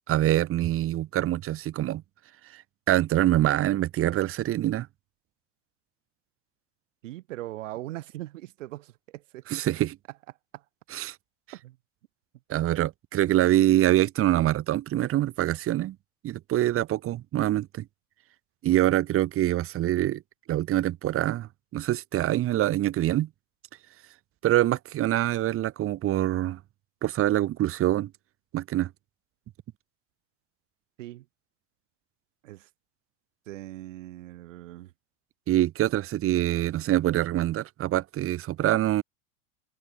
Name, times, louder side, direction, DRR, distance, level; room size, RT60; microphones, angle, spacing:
voice 1, 0.1-2.0 2.9-4.9 9.5-10.0 10.9-11.1 12.5-16.0 16.2-17.9 18.6-20.2 20.5-23.3 24.4-26.6 27.0-28.1 28.5-28.9 35.5-39.0, right 14 dB, 35° right, 2.1 m, -25 dB
voice 2, 7.0-9.5 10.5-10.6 11.5-11.8 31.0-31.3 32.4-32.7 33.5-34.9, right 16 dB, 75° right, 4.2 m, -40 dB
hypercardioid pair, 120°, 38 cm